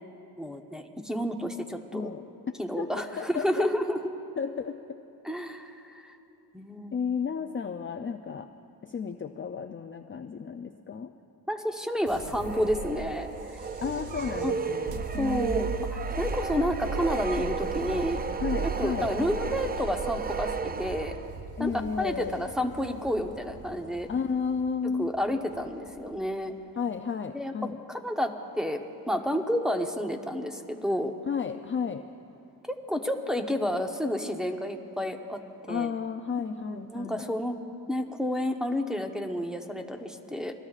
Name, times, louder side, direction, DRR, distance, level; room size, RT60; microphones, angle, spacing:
voice 1, 0.4-2.1 2.6-4.0 5.2-6.1 6.5-7.0 11.5-13.3 14.4-14.5 15.2-18.2 18.6-21.1 21.6-21.7 22.0-24.1 25.0-26.5 27.3-27.5 27.9-28.8 29.1-31.1 32.7-35.4 35.7-35.9 36.4-37.6 37.9-40.5, equal, ahead, 2 dB, 0.9 m, -30 dB
voice 2, 2.8-3.7 4.4-5.0 6.9-8.5 8.8-11.1 13.8-15.6 18.4-19.1 21.6-22.5 24.1-25.1 26.8-27.8 31.2-32.0 35.7-37.2, left 6 dB, 35° left, 6 dB, 0.4 m, -32 dB
sound 1, 12.1-26.3, right 4 dB, 50° right, 1.0 m, -38 dB
sound 2, 12.4-21.5, right 5 dB, 25° right, 0.4 m, -34 dB
26.5 x 19.5 x 2.4 m, 3.0 s
wide cardioid pair, 115°, 38 cm